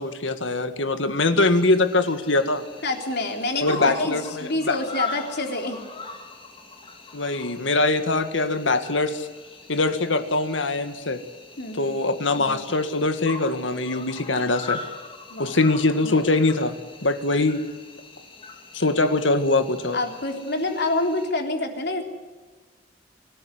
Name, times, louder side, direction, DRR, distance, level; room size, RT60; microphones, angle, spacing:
voice 1, 0.0-2.6 3.6-4.8 7.1-9.3 9.7-11.2 11.8-14.8 15.4-16.7 17.0-17.6 18.7-20.0, left 2 dB, 80° left, 9 dB, 2.0 m, -22 dB
Cricket, 1.4-21.3, left 4 dB, 30° left, 2.9 m, -40 dB
voice 2, 2.8-5.9 11.6-11.9 15.3-15.6 19.9-22.0, left 2 dB, 60° left, 4 dB, 3.6 m, -27 dB
24.5 x 13.5 x 9.8 m, 1.3 s
head